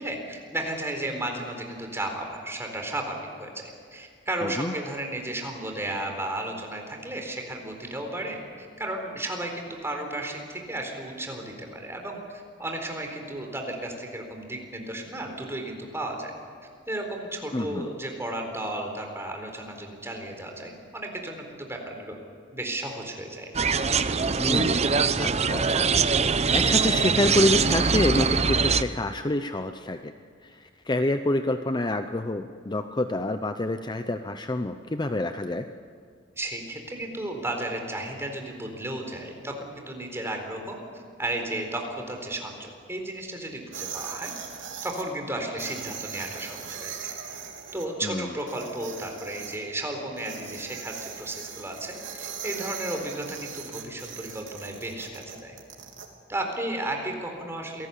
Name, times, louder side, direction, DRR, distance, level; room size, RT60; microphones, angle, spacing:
voice 1, 0.0-12.2 12.6-16.3 16.9-22.2 22.5-23.5 36.4-40.8 41.2-44.3 44.8-46.9 47.7-55.6 56.3-57.9, right 1 dB, 15° right, 3 dB, 4.1 m, -34 dB
voice 2, 4.4-4.7 17.5-17.9 24.4-24.8 25.2-25.9 26.2-30.1 30.4-35.7 48.0-48.3, left 1 dB, 25° left, 8 dB, 0.7 m, -27 dB
sound 1, 23.5-28.8, right 5 dB, 35° right, 0.8 m, -23 dB
sound 2, 43.7-45.0 45.6-47.9 48.4-49.6 50.2-56.1, right 7 dB, 85° right, 3.3 m, -39 dB
27.0 x 18.5 x 8.4 m, 2.2 s
head